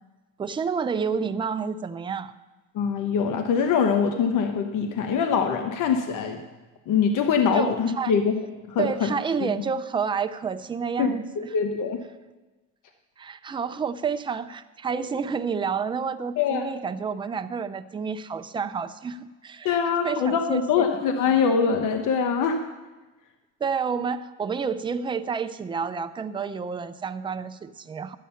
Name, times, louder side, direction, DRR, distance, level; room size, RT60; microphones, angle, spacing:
voice 1, 0.4-2.3 7.5-8.1 8.8-11.3 13.2-19.8 20.0-20.9 23.6-28.2, right 6 dB, 15° right, 10 dB, 0.3 m, -29 dB
voice 2, 2.7-6.4 6.9-8.4 8.7-9.1 9.4-9.5 11.0-12.0 16.4-16.7 19.6-22.6, left 6 dB, 65° left, 5 dB, 1.0 m, -23 dB
12.5 x 8.4 x 5.6 m, 1.2 s
cardioid pair, 150°, 33 cm